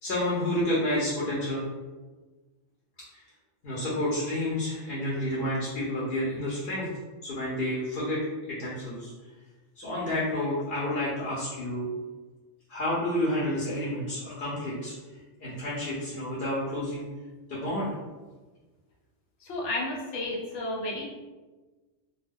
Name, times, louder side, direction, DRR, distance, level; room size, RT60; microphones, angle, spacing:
voice 1, 0.0-1.7 3.1-3.2 3.6-6.9 7.2-9.1 9.8-11.9 12.7-14.9 15.4-17.0 17.5-17.9, left 1 dB, 60° left, -7 dB, 0.8 m, -30 dB
voice 2, 19.4-21.1, left 2 dB, 85° left, -3 dB, 1.0 m, -32 dB
2.2 x 2.2 x 3.4 m, 1.3 s
omnidirectional pair, 1.2 m